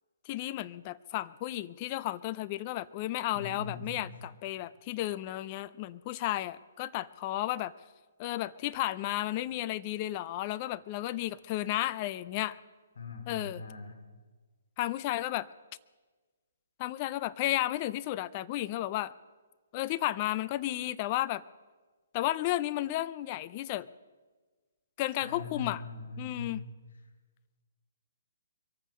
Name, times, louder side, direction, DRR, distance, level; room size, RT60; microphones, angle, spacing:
voice 1, 0.3-7.7 8.2-12.6 13.3-13.6 14.8-15.5 16.8-19.1 19.7-21.4 22.1-23.9 25.0-25.8 26.2-26.6, left 15 dB, 35° left, 17 dB, 0.5 m, -33 dB
voice 2, 3.3-4.2 13.0-14.0 25.2-26.7, left 3 dB, 70° left, 5 dB, 2.9 m, -41 dB
23.5 x 8.8 x 6.4 m, 1.3 s
hypercardioid pair, 140°, 0 cm